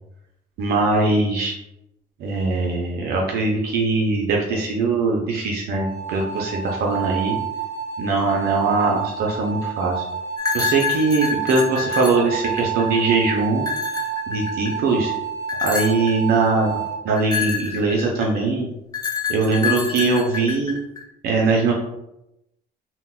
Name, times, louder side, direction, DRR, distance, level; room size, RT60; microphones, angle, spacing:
voice 1, 0.6-1.5 2.2-7.4 8.0-10.0 10.5-13.6 14.3-15.1 15.6-18.7 19.3-20.8 21.2-21.7, right 3 dB, 70° right, 0 dB, 0.5 m, -21 dB
sound 1, 5.7-17.0, right 8 dB, 15° right, 1.1 m, -29 dB
sound 2, 10.4-13.0 13.6-14.8 15.5-16.1 17.2-18.4 18.9-21.0, left 7 dB, 20° left, 0.5 m, -27 dB
3.7 x 2.1 x 2.2 m, 0.86 s
cardioid pair, 110°, 17 cm